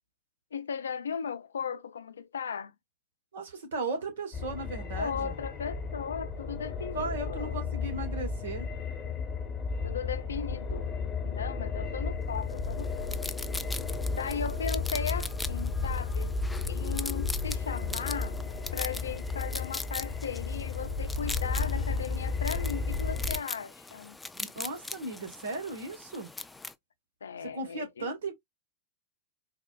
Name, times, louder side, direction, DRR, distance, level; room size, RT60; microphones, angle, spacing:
voice 1, 0.5-2.7 4.9-7.6 9.8-10.9 11.2-13.1 14.1-16.4 16.7-18.4 18.7-24.2 27.2-28.1, left 7 dB, 75° left, 0.4 m, -37 dB
voice 2, 3.3-5.3 6.9-8.7 24.4-26.3 27.4-28.3, right 2 dB, 70° right, 1.4 m, -36 dB
sound 1, 4.3-23.4, left 4 dB, 25° left, 1.1 m, -33 dB
sound 2, 12.6-26.7, left 3 dB, 10° left, 0.3 m, -41 dB
4.0 x 2.4 x 2.4 m
figure-of-eight pair, 90°, 0 cm